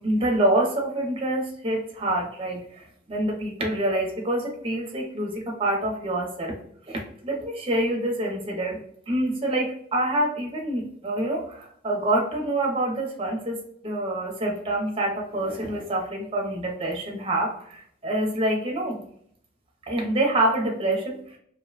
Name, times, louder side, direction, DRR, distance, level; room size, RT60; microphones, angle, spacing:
voice 1, 0.0-6.6 6.9-19.0 19.9-21.2, right 1 dB, 30° right, -1 dB, 0.8 m, -26 dB
2.7 x 2.2 x 2.4 m, 0.65 s
head